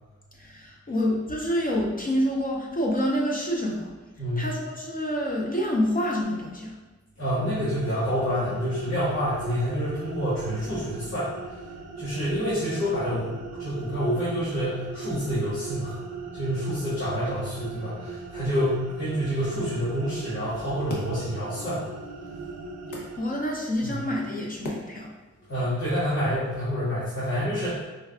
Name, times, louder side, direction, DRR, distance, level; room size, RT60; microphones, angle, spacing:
voice 1, 0.4-3.9 4.4-6.7 23.2-25.1, equal, 30° left, -2 dB, 0.5 m, -27 dB
voice 2, 4.2-4.5 7.2-11.3 12.0-16.0 16.3-21.8 23.8-24.0 25.5-27.8, equal, 65° left, -12 dB, 1.4 m, -28 dB
sound 1, 7.4-23.2, right 4 dB, 60° right, 0.4 m, -39 dB
sound 2, 20.5-25.5, left 1 dB, 90° left, 0.7 m, -43 dB
4.5 x 2.2 x 2.3 m, 1.2 s
wide cardioid pair, 110°, 30 cm